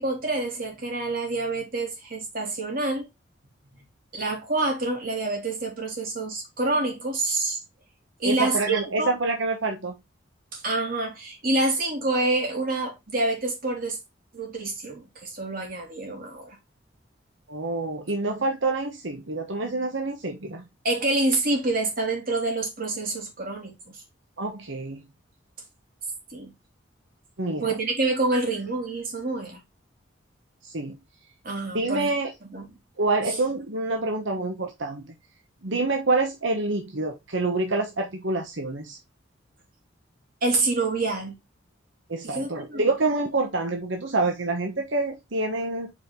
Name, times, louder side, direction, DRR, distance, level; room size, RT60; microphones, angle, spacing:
voice 1, 0.0-3.1 3.7-3.9 4.1-7.6 8.2-9.1 10.5-14.0 14.3-16.6 20.8-24.0 26.3-26.5 27.6-29.6 31.4-32.1 32.5-32.7 33.3-33.4 40.4-41.4 42.2-42.9, right 2 dB, 50° right, 3.2 m, -27 dB
voice 2, 8.2-9.9 17.5-20.6 24.4-25.0 27.4-27.7 30.6-31.0 31.7-32.3 33.0-35.1 35.6-39.0 42.1-45.9, right 2 dB, 75° right, 1.2 m, -27 dB
5.2 x 5.1 x 3.8 m
head